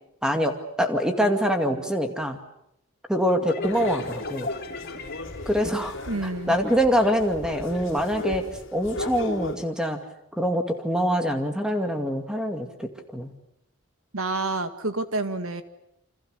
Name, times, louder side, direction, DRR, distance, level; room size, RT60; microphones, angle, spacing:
voice 1, 0.2-2.4 3.1-4.5 5.5-6.0 6.2-8.4 8.7-10.0 10.4-13.3, equal, 5° right, 5 dB, 2.3 m, -24 dB
sound 1, 3.4-7.0, left 3 dB, 45° left, 2.1 m, -37 dB
sound 2, 3.6-9.6, left 2 dB, 65° left, 3.5 m, -36 dB
voice 2, 6.1-6.6 14.1-15.6, right 2 dB, 85° right, 10 dB, 1.9 m, -28 dB
28.5 x 26.0 x 6.7 m, 0.77 s
head